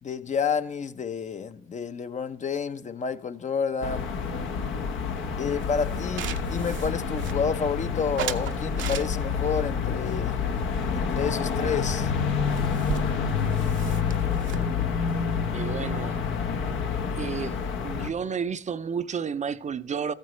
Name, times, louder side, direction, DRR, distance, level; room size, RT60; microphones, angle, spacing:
voice 1, 0.0-4.1 5.4-10.4 10.9-12.1, left 6 dB, 40° left, 0.6 m, -30 dB
sound 1, 3.8-18.1, left 6 dB, 80° left, 1.0 m, -28 dB
sound 2, 5.6-7.7 8.2-9.5 10.0-11.3 11.6-11.7 12.0-12.1 12.3-16.2, right 9 dB, 75° right, 0.8 m, -37 dB
voice 2, 15.5-16.2 17.1-17.6 17.8-20.1, right 6 dB, 35° right, 0.5 m, -31 dB
14.0 x 9.0 x 3.1 m
cardioid pair, 90°, 20 cm